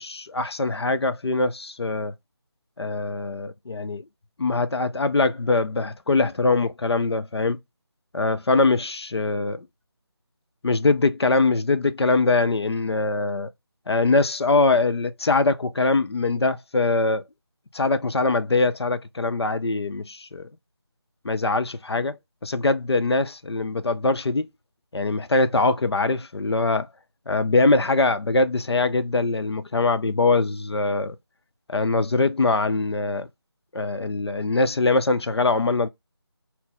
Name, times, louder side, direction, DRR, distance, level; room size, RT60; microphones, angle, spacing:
voice 1, 0.0-2.1 2.8-4.0 4.4-7.6 8.1-9.6 10.6-13.5 13.9-17.2 17.7-20.5 21.2-24.5 24.9-26.9 27.3-31.2 31.7-33.3 33.7-35.9, left 3 dB, 75° left, 0.6 m, -22 dB
4.2 x 2.0 x 3.8 m
figure-of-eight pair, 170°, 14 cm